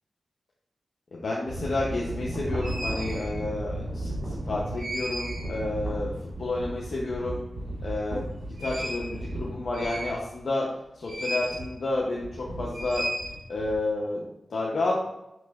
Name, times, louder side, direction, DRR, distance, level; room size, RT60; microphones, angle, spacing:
voice 1, 1.1-7.4 7.8-8.3 8.6-10.7 10.9-13.1 13.5-14.9, left 2 dB, 75° left, -4 dB, 0.6 m, -30 dB
sound 1, 1.5-10.5 11.0-11.7 12.0-13.7, right 1 dB, 70° right, 1.4 m, -34 dB
5.2 x 3.0 x 2.3 m, 0.87 s
cardioid pair, 45°, 0 cm